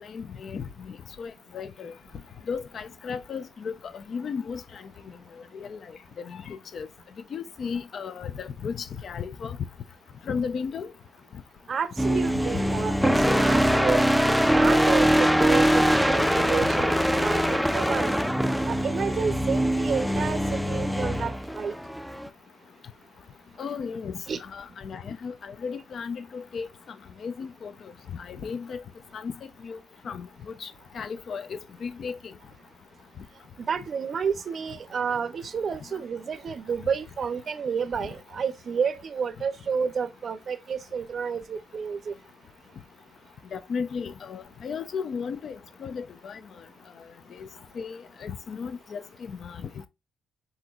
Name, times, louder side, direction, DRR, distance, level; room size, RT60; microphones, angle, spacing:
voice 1, 0.0-1.9 2.5-4.8 5.5-5.8 6.2-6.9 7.3-9.6 10.3-10.9 23.6-24.1 24.5-26.7 27.2-27.7 28.1-28.8 29.1-29.3 29.6-29.8 30.0-30.3 30.6-32.2 43.5-46.4 47.4-47.5 47.8-49.6, left 6 dB, 55° left, 0.5 m, -35 dB
voice 2, 11.7-18.2 18.7-21.7 24.3-24.4 33.6-42.1, right 6 dB, 50° right, 0.5 m, -30 dB
sound 1, 12.0-22.3, equal, ahead, 0.4 m, -23 dB
4.3 x 3.8 x 2.3 m
cardioid pair, 90°, 0 cm